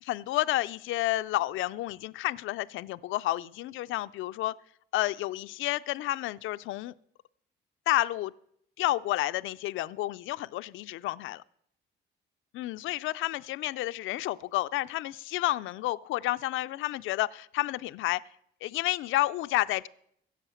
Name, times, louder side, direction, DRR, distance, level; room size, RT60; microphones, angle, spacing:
voice 1, 0.0-4.5 4.9-6.9 7.9-8.3 8.8-11.4 12.5-18.2 18.6-19.9, left 16 dB, 80° left, 15 dB, 0.4 m, -30 dB
15.0 x 7.8 x 7.0 m, 0.71 s
cardioid pair, 90°, 20 cm